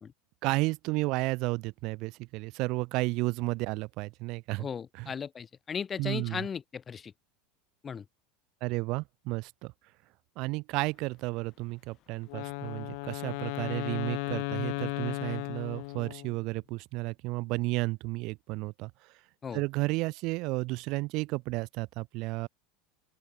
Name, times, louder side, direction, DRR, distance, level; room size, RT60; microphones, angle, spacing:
voice 1, 0.4-4.7 5.0-5.1 6.0-6.4 8.6-9.7 10.4-19.1 19.5-22.5, right 23 dB, 60° right, 0.7 m, -32 dB
voice 2, 4.6-7.1 7.8-8.0 19.4-19.6, left 7 dB, 25° left, 1.1 m, -36 dB
sound 1, 10.9-16.0, left 14 dB, 45° left, 4.6 m, -69 dB
Wind instrument woodwind instrument, 12.3-16.4, left 33 dB, 70° left, 0.8 m, -35 dB
open air
supercardioid pair, 115°, 0 cm